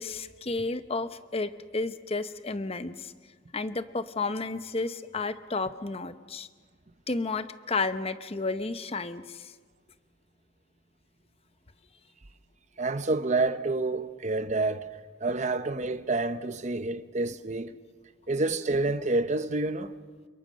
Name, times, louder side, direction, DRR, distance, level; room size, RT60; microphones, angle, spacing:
voice 1, 0.0-3.1 3.5-6.5 7.1-9.5, left 3 dB, 30° left, 0.8 m, -32 dB
voice 2, 12.8-14.9 15.2-17.7 18.3-19.9, right 2 dB, 40° right, 0.8 m, -28 dB
29.5 x 22.0 x 6.4 m
head